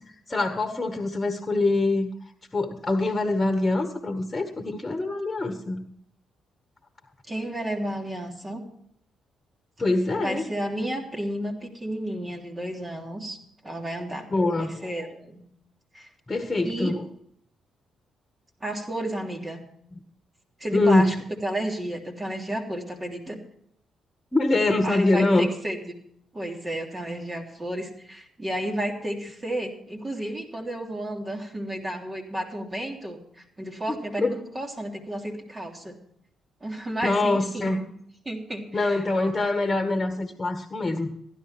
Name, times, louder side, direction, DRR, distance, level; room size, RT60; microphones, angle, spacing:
voice 1, 0.0-2.1 2.5-5.8 9.8-10.5 14.3-14.9 16.3-17.0 20.7-21.1 24.3-25.5 33.9-34.3 37.0-37.8 38.7-41.1, left 2 dB, 25° left, 7 dB, 1.8 m, -24 dB
voice 2, 7.3-8.6 10.2-13.4 13.6-14.3 14.6-15.4 15.9-16.1 16.6-16.9 18.6-19.6 20.6-21.1 21.4-23.4 24.8-25.9 26.3-35.9 36.6-37.9 38.2-39.0, right 1 dB, 25° right, 0 dB, 3.3 m, -32 dB
15.5 x 11.0 x 4.5 m, 0.68 s
hypercardioid pair, 45°, 0 cm